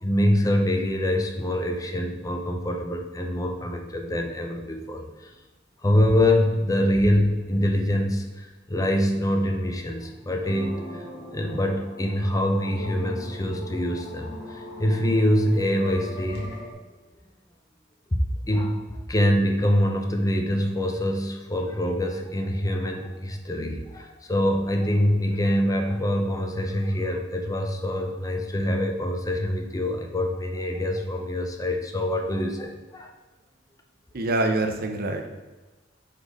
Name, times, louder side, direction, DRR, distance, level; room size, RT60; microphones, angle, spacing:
voice 1, 0.0-5.3 5.8-11.0 11.3-16.5 18.5-33.1, left 1 dB, 20° left, 3 dB, 0.6 m, -25 dB
sound 1, 10.4-16.7, equal, 65° left, 1.4 m, -39 dB
voice 2, 34.1-35.3, right 2 dB, 55° right, 4 dB, 0.7 m, -25 dB
4.9 x 4.2 x 4.9 m, 1.2 s
head